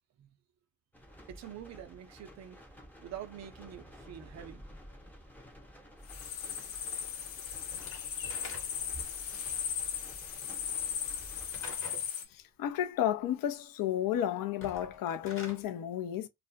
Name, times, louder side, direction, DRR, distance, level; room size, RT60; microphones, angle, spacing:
sound 1, 0.9-11.8, equal, 5° left, 0.7 m, -52 dB
voice 1, 1.3-2.6 3.0-4.6, right 10 dB, 35° right, 0.6 m, -46 dB
sound 2, 6.0-12.2, left 9 dB, 75° left, 0.9 m, -37 dB
Slam / Wood, 7.7-9.0 11.5-12.1 14.5-15.6, left 2 dB, 25° left, 1.1 m, -47 dB
voice 2, 12.3-16.3, left 11 dB, 45° left, 0.6 m, -32 dB
2.4 x 2.0 x 2.6 m
hypercardioid pair, 70°, 48 cm